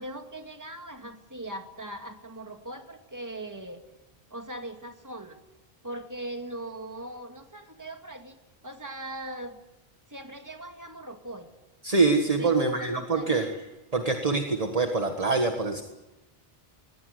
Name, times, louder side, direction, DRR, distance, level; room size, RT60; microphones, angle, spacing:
voice 1, 0.0-3.8 4.3-5.4 5.8-8.4 8.6-9.6 10.1-11.5 12.4-13.4, right 1 dB, 15° right, 5 dB, 2.2 m, -39 dB
voice 2, 11.8-13.5 13.9-15.8, right 3 dB, 35° right, 5 dB, 1.7 m, -25 dB
22.0 x 20.0 x 9.5 m, 1.0 s
omnidirectional pair, 1.0 m